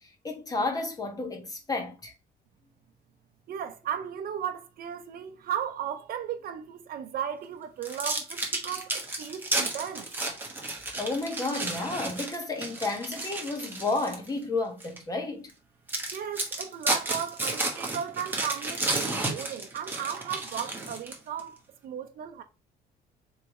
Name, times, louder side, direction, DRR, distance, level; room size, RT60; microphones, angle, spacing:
voice 1, 0.0-2.1 11.0-15.5 19.1-19.2, left 3 dB, 20° left, 1.3 m, -32 dB
voice 2, 3.5-10.1 16.1-22.4, right 9 dB, 60° right, 0.7 m, -35 dB
sound 1, 7.8-14.3 14.8-15.0 15.5-15.6 15.9-21.4, right 2 dB, 10° right, 1.3 m, -32 dB
3.3 x 3.2 x 4.2 m
cardioid pair, 110°, 17 cm